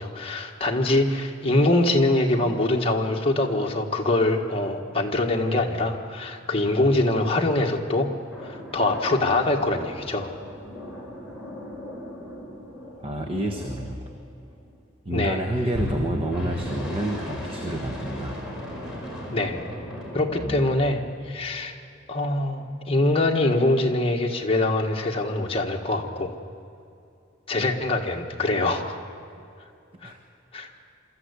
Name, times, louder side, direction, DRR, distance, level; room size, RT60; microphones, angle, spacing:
voice 1, 0.0-8.1 8.4-10.3 15.1-15.4 19.3-19.6 20.1-21.7 22.1-26.3 27.5-29.0 30.0-30.1 30.5-30.7, left 2 dB, 30° left, 1 dB, 1.6 m, -24 dB
sound 1, 8.3-14.7 15.7-20.6, equal, 5° right, 5.0 m, -36 dB
voice 2, 13.0-14.1 15.0-18.3 20.4-20.8 30.0-30.2, right 1 dB, 30° right, 4 dB, 1.2 m, -29 dB
25.0 x 14.0 x 8.2 m, 2.6 s
head